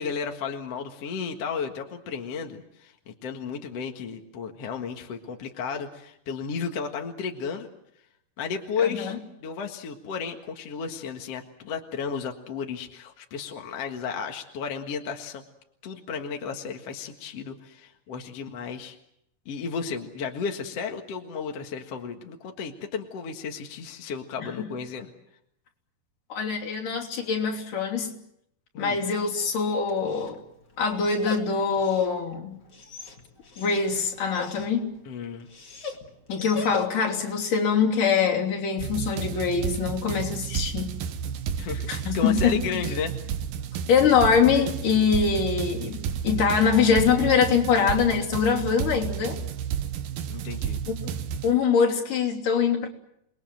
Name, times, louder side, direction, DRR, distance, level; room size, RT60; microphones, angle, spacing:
voice 1, 0.0-7.7 8.4-15.4 15.8-19.0 19.5-25.1 28.7-29.0 35.1-35.5 41.6-43.1 50.3-50.8, left 6 dB, 50° left, 3 dB, 2.5 m, -33 dB
voice 2, 8.8-9.2 24.6-24.7 26.3-28.1 28.8-30.4 30.8-32.6 33.6-34.9 36.3-41.0 41.9-42.5 43.9-49.4 50.9-51.0 51.4-52.9, left 6 dB, 70° left, -1 dB, 4.8 m, -23 dB
Dog, 28.9-37.2, left 4 dB, 35° left, 2.4 m, -42 dB
sound 1, 38.8-51.5, right 8 dB, 85° right, 3.0 m, -32 dB
28.5 x 21.5 x 7.8 m, 0.78 s
omnidirectional pair, 3.9 m